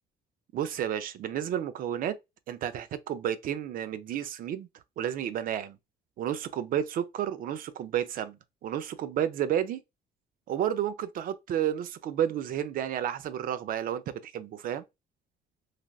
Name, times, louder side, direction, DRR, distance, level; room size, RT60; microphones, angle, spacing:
voice 1, 0.5-2.2 2.5-4.7 5.0-5.8 6.2-8.4 8.6-9.8 10.5-14.8, right 10 dB, 55° right, 0.4 m, -31 dB
3.2 x 2.4 x 2.3 m
cardioid pair, 110°, 17 cm